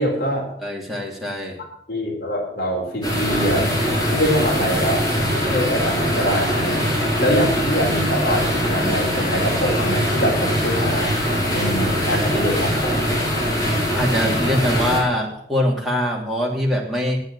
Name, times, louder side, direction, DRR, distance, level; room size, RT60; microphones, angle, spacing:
voice 1, 0.0-0.5 1.9-5.0 5.3-6.8 7.2-11.1 11.5-13.0, equal, 55° left, -3 dB, 3.9 m, -24 dB
voice 2, 0.6-1.6 13.9-17.2, equal, ahead, -4 dB, 2.9 m, -23 dB
sound 1, 3.0-15.0, equal, 25° left, 5.7 m, -22 dB
9.7 x 9.2 x 7.3 m, 0.65 s
head